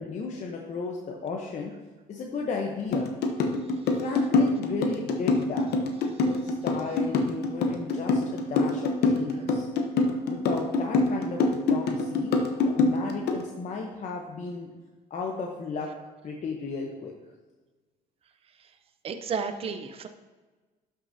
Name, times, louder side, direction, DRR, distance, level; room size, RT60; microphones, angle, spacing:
voice 1, 0.0-1.7 2.1-3.1 3.9-5.7 6.2-9.7 10.3-12.4 12.6-14.7 15.1-15.9 16.2-17.1, left 4 dB, 45° left, 0 dB, 0.9 m, -34 dB
sound 1, 2.9-13.4, left 3 dB, 70° left, 1.0 m, -24 dB
voice 2, 19.0-20.1, right 6 dB, 35° right, 8 dB, 0.6 m, -32 dB
12.0 x 6.3 x 2.7 m, 1.3 s
cardioid pair, 110°, 17 cm